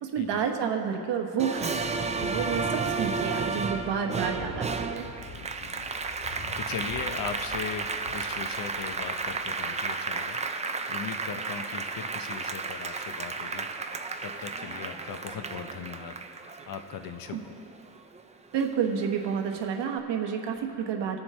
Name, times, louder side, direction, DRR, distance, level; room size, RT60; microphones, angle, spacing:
voice 1, 0.0-5.0 17.3-17.4 18.5-21.2, right 7 dB, 80° right, 3 dB, 1.1 m, -30 dB
Applause, 1.4-18.2 18.6-19.8, right 4 dB, 20° right, 0.3 m, -33 dB
sound 1, 1.8-10.0, left 4 dB, 75° left, 1.2 m, -47 dB
voice 2, 2.3-2.7 5.3-5.9 6.6-10.4 10.9-13.9 14.2-17.6, left 7 dB, 55° left, 7 dB, 0.7 m, -39 dB
20.0 x 7.2 x 3.3 m, 2.7 s
cardioid pair, 145°, 42 cm